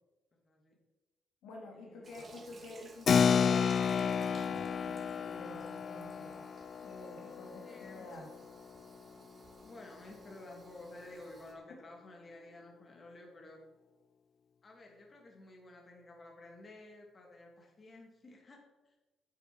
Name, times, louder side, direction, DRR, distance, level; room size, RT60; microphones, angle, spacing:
voice 1, 0.5-0.8 1.7-2.5 7.6-8.1 9.6-13.6 14.6-18.9, left 2 dB, 35° left, 1 dB, 2.8 m, -53 dB
voice 2, 1.4-6.5 6.8-8.3 11.7-11.8, left 1 dB, 85° left, 0 dB, 2.8 m, -49 dB
Toilet flush, 2.0-11.5, right 3 dB, 35° right, 2.2 m, -58 dB
Keyboard (musical), 3.1-9.1, left 7 dB, 50° left, 0.3 m, -32 dB
9.4 x 8.2 x 6.3 m, 1.1 s
cardioid pair, 90°, 0 cm